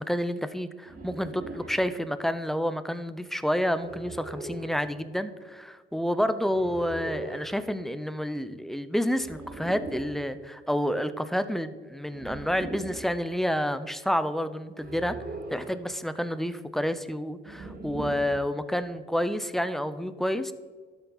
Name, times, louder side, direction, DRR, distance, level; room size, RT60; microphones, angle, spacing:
voice 1, 0.0-15.2 15.5-20.5, equal, ahead, 12 dB, 0.6 m, -29 dB
sound 1, 0.9-1.8 3.8-4.8 6.5-7.5 9.2-10.2 12.1-13.1 14.8-15.8 17.5-18.5, right 2 dB, 50° right, 1.7 m, -40 dB
12.0 x 7.1 x 4.0 m, 1.5 s
cardioid pair, 90°, 20 cm